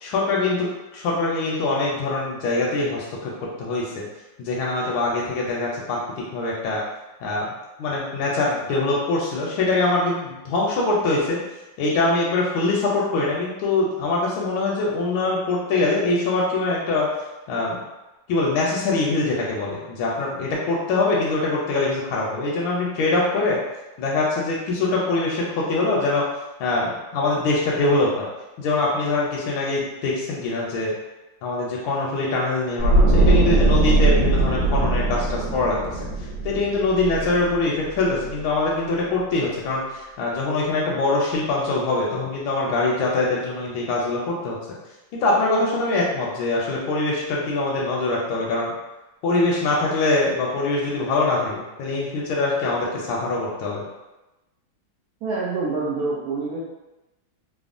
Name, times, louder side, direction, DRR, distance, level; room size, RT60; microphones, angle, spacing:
voice 1, 0.0-3.3 3.6-4.0 4.4-6.8 7.2-7.5 7.8-11.4 11.8-17.1 17.5-17.8 18.3-23.6 24.0-26.2 26.6-28.3 28.6-30.9 31.4-36.1 36.4-44.6 45.2-48.7 49.2-53.9, left 2 dB, 80° left, -4 dB, 1.3 m, -23 dB
sound 1, 32.8-37.9 38.2-38.4, right 2 dB, 70° right, 1.3 m, -20 dB
voice 2, 55.2-56.6, right 3 dB, 85° right, -6 dB, 0.8 m, -26 dB
3.4 x 2.0 x 2.4 m, 1.0 s
omnidirectional pair, 2.2 m